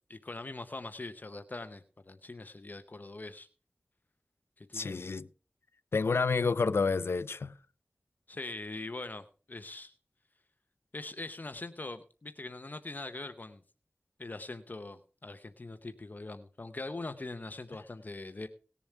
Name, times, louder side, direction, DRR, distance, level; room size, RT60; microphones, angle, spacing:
voice 1, 0.1-3.5 4.6-5.0 8.3-9.9 10.9-13.6 14.2-18.5, left 2 dB, 50° left, 0.8 m, -42 dB
voice 2, 4.7-5.3 5.9-7.5, left 4 dB, 85° left, 0.5 m, -29 dB
18.5 x 7.0 x 4.5 m
wide cardioid pair, 70°, 4 cm